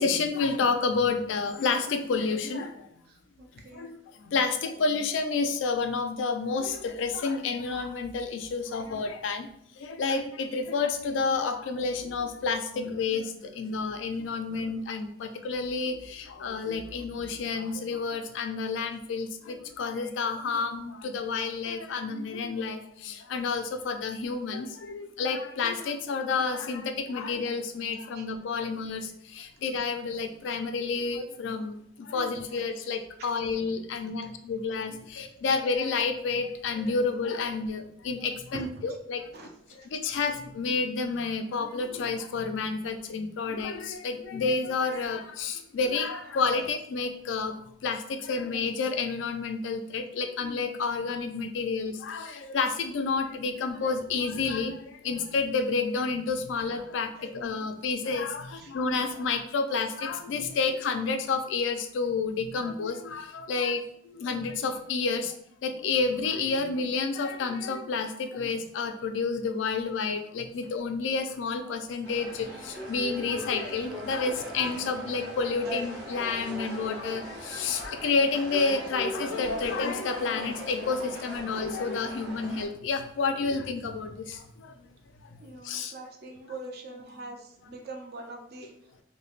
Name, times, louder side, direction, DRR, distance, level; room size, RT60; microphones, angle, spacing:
voice 1, 0.0-2.9 3.7-3.9 4.2-9.5 9.8-39.2 39.9-47.6 47.8-54.8 55.0-65.3 65.6-84.7 85.6-85.9, left 4 dB, 90° left, 8 dB, 0.4 m, -30 dB
voice 2, 3.1-3.9 15.2-15.3 28.1-28.2 32.5-32.6 33.2-33.3 34.2-34.3 38.5-39.0 39.3-39.9 46.6-46.7 58.6-58.8 85.4-88.7, right 2 dB, 55° right, 3 dB, 0.5 m, -43 dB
sound 1, 72.0-82.7, equal, 20° right, 1.3 m, -40 dB
3.1 x 2.1 x 2.4 m, 0.72 s
head